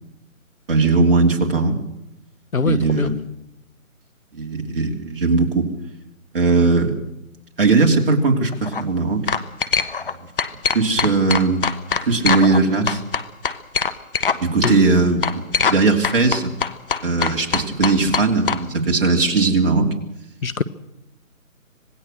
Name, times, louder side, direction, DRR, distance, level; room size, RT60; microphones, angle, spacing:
voice 1, 0.7-1.8 2.7-3.1 4.3-5.7 6.3-7.0 7.6-9.2 10.7-11.6 12.1-13.0 14.4-15.4 15.7-16.5 17.0-19.9, right 3 dB, 40° right, 2 dB, 3.0 m, -18 dB
voice 2, 2.5-3.1 14.6-14.9 20.4-20.6, left 4 dB, 75° left, 16 dB, 1.5 m, -22 dB
sound 1, 8.5-8.8 9.3-10.1 10.4-12.6 12.9-14.4 14.6-14.7 15.2-15.8 16.0-18.6, left 6 dB, 40° left, 1.2 m, -22 dB
26.0 x 18.5 x 6.6 m, 0.89 s
figure-of-eight pair, 155°, 42 cm